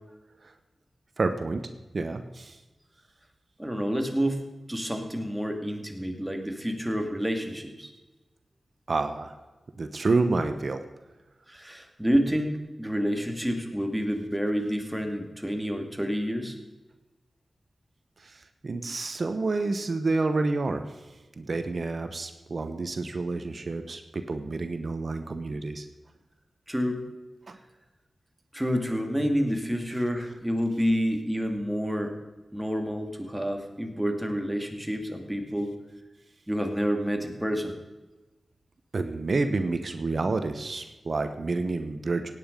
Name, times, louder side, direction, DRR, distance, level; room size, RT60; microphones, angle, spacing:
voice 1, 1.2-1.6 1.9-2.6 8.9-9.3 9.8-10.8 18.2-21.0 21.4-25.9 27.5-27.6 38.9-42.3, right 3 dB, 60° right, 8 dB, 1.0 m, -29 dB
voice 2, 3.6-7.9 11.5-16.6 26.7-27.0 28.5-32.2 32.5-35.7 36.5-37.8, equal, 5° right, 4 dB, 2.3 m, -29 dB
17.0 x 9.4 x 5.3 m, 1.1 s
cardioid pair, 50°, 0 cm